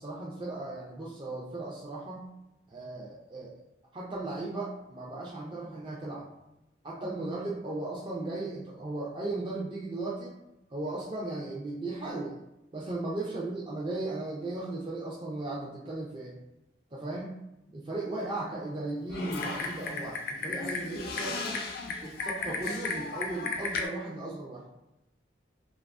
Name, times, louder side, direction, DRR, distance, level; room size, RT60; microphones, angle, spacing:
voice 1, 0.0-2.3 2.7-3.6 3.9-6.3 6.8-10.3 10.7-12.4 12.7-16.4 16.9-17.3 17.7-21.6 22.0-24.6, right 2 dB, 25° right, -5 dB, 0.4 m, -36 dB
Typing, 19.1-23.9, left 3 dB, 55° left, 0.3 m, -34 dB
2.5 x 2.3 x 2.4 m, 0.90 s
head